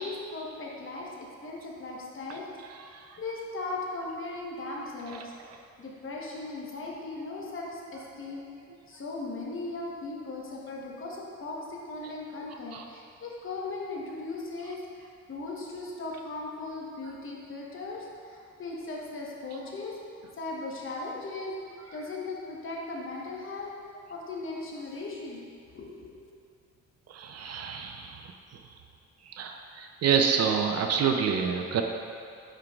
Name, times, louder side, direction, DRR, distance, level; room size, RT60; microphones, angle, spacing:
voice 1, 0.0-2.5 3.2-5.3 5.8-8.5 8.9-20.0 20.3-21.6 21.9-23.7 24.1-25.5 25.7-26.2, left 3 dB, 45° left, -2 dB, 1.1 m, -38 dB
voice 2, 27.1-28.3 28.5-28.6 29.3-31.8, right 6 dB, 55° right, 4 dB, 0.6 m, -28 dB
9.0 x 4.5 x 2.4 m, 2.3 s
cardioid pair, 90°, 30 cm